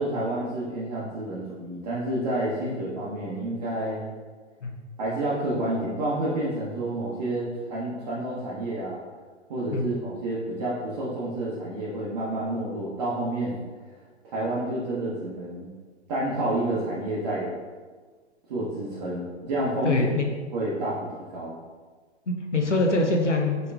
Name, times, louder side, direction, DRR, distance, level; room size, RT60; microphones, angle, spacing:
voice 1, 0.0-4.1 5.0-9.0 9.5-13.6 14.2-15.7 16.1-17.5 18.5-20.0 20.5-21.6, right 1 dB, 35° right, -7 dB, 0.8 m, -29 dB
voice 2, 19.8-20.3 22.3-23.7, left 2 dB, 85° left, 2 dB, 0.8 m, -24 dB
5.3 x 3.9 x 2.3 m, 1.4 s
figure-of-eight pair, 120°, 35 cm